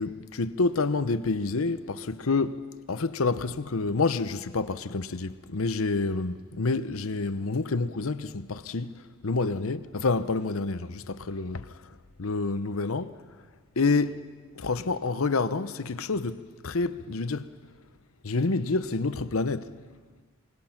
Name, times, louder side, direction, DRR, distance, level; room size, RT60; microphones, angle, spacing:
voice 1, 0.0-11.8 12.2-13.1 13.8-14.2 14.5-17.5 18.2-19.7, left 3 dB, 85° left, 0.8 m, -28 dB
26.0 x 22.5 x 5.9 m
head